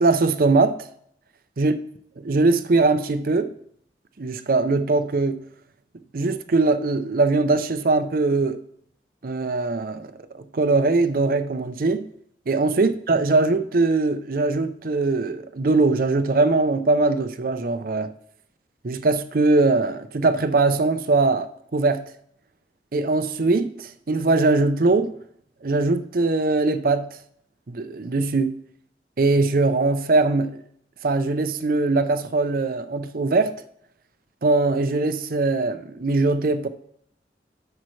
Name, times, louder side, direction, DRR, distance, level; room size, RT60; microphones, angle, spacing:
voice 1, 0.0-0.8 1.6-1.7 2.2-3.5 4.2-5.4 6.1-8.6 9.2-10.1 10.4-12.1 12.5-18.1 18.8-22.0 22.9-25.2 25.6-27.1 27.7-28.6 29.2-30.6 31.0-33.5 34.4-36.7, right 3 dB, 50° right, 0.5 m, -21 dB
10.5 x 7.3 x 3.2 m
head